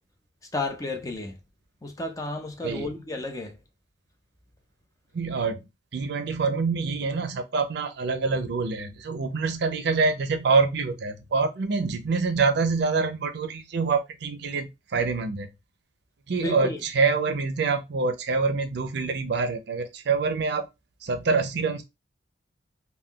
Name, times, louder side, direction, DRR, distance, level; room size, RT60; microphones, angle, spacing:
voice 1, 0.5-1.3 1.8-3.6 16.4-16.8, left 2 dB, 20° left, 0.5 m, -32 dB
voice 2, 2.6-2.9 5.1-5.6 5.9-15.5 16.3-20.7 21.0-21.8, right 4 dB, 65° right, 0.5 m, -26 dB
2.3 x 2.2 x 3.6 m
head